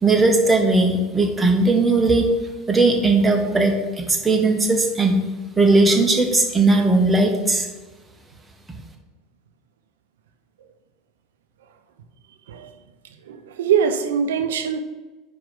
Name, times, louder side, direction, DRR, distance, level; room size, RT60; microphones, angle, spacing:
voice 1, 0.0-2.3 2.7-5.2 5.6-7.7, right 2 dB, 15° right, 1 dB, 1.3 m, -18 dB
voice 2, 13.2-14.8, right 7 dB, 85° right, 8 dB, 0.6 m, -22 dB
5.0 x 4.7 x 6.0 m, 1.2 s
hypercardioid pair, 90°, 0 cm